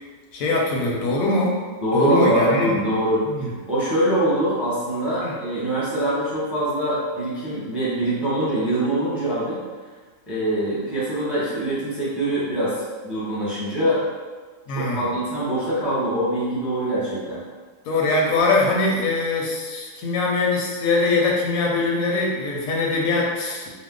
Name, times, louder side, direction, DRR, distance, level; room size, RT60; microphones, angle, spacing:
voice 1, 0.3-1.6 1.9-2.8 3.3-3.5 5.2-5.3 14.7-15.1 17.9-23.7, left 3 dB, 85° left, -2 dB, 1.1 m, -22 dB
voice 2, 1.8-3.3 3.7-9.6 10.3-14.0 14.7-17.4, right 1 dB, ahead, -10 dB, 0.8 m, -23 dB
2.9 x 2.0 x 3.6 m, 1.4 s
omnidirectional pair, 1.4 m